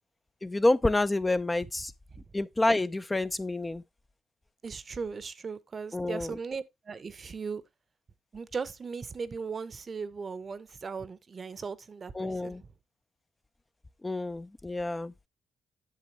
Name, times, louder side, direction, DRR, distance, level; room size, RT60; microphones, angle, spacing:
voice 1, 0.4-1.9 2.3-3.8 5.9-6.4 12.2-12.6 14.0-15.1, left 2 dB, 15° left, 0.4 m, -28 dB
voice 2, 4.6-7.6 8.3-12.7, right 5 dB, 40° right, 0.7 m, -38 dB
8.4 x 6.9 x 2.9 m
cardioid pair, 90°, 0 cm